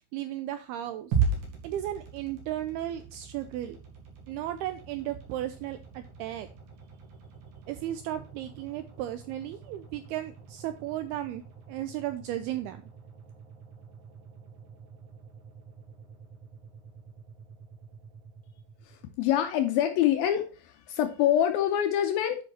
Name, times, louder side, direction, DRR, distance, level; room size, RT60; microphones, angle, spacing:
voice 1, 0.1-1.2 1.6-3.8 4.3-6.5 7.7-11.4 11.7-12.8, right 12 dB, 90° right, 9 dB, 2.2 m, -35 dB
sound 1, 1.1-19.3, right 5 dB, 70° right, 4.4 m, -39 dB
voice 2, 19.2-22.4, left 11 dB, 85° left, 6 dB, 2.2 m, -25 dB
9.9 x 5.4 x 4.2 m, 0.37 s
omnidirectional pair, 5.1 m